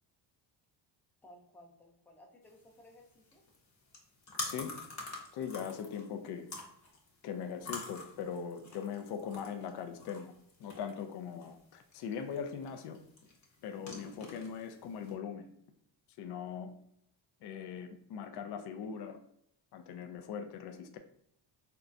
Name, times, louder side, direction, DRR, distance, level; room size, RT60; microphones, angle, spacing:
voice 1, 1.2-3.4, left 1 dB, 5° left, 0 dB, 0.6 m, -58 dB
sound 1, 2.4-15.1, left 3 dB, 35° left, 0.9 m, -47 dB
voice 2, 5.3-6.5 7.2-10.3 10.6-13.0 13.6-15.5 16.2-16.7 17.4-19.2 19.7-21.0, left 7 dB, 55° left, 7 dB, 0.5 m, -40 dB
3.7 x 2.3 x 2.5 m, 0.72 s
cardioid pair, 90°, 49 cm